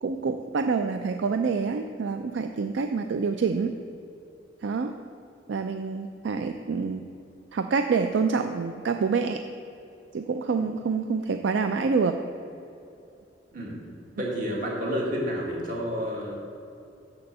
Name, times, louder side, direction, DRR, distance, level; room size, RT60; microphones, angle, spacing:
voice 1, 0.0-3.8 4.6-5.0 5.5-7.1 7.5-9.4 10.1-12.2, right 5 dB, 70° right, 7 dB, 0.4 m, -27 dB
voice 2, 14.2-16.6, equal, 50° right, -3 dB, 2.0 m, -30 dB
7.0 x 6.8 x 6.6 m, 2.7 s
head